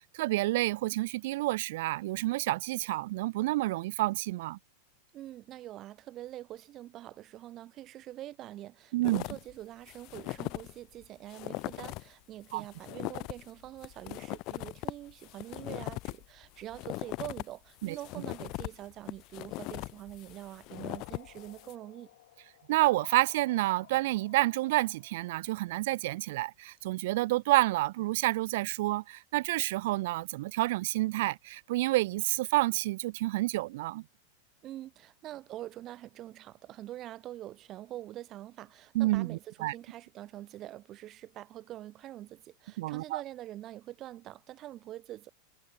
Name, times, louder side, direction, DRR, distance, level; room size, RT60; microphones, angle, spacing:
voice 1, 0.1-4.6 8.9-9.2 12.5-12.7 17.8-18.0 22.7-34.0 38.9-39.7 42.8-43.2, right 18 dB, 65° right, 0.7 m, -29 dB
voice 2, 5.1-22.1 34.6-45.3, right 13 dB, 35° right, 2.7 m, -45 dB
sound 1, 9.0-9.5 9.9-10.7 11.0-11.1 11.3-12.1 12.5-17.4 17.8-21.7, left 23 dB, 45° left, 0.3 m, -39 dB
sound 2, 20.7-26.1, left 14 dB, 75° left, 2.3 m, -54 dB
supercardioid pair, 145°, 0 cm